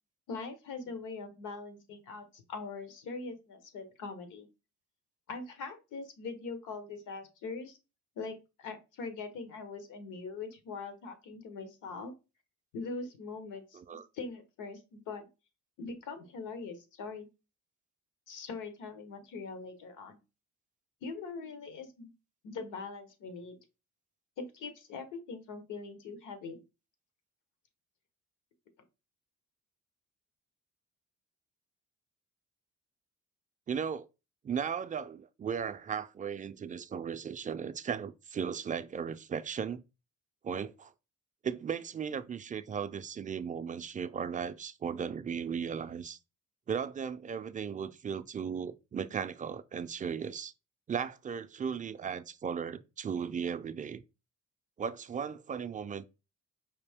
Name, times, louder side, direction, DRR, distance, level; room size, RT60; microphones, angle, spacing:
voice 1, 0.3-4.5 5.3-7.8 8.2-12.1 12.7-15.3 15.8-17.3 18.3-20.2 21.0-22.1 22.4-23.6 24.4-26.6, left 4 dB, 85° left, 1.1 m, -42 dB
voice 2, 13.7-14.1 33.7-34.1 34.4-39.8 40.4-40.9 41.4-46.2 46.7-50.5 50.9-54.0 54.8-56.1, right 7 dB, 25° right, 0.4 m, -36 dB
5.0 x 2.7 x 3.5 m
cardioid pair, 90°, 30 cm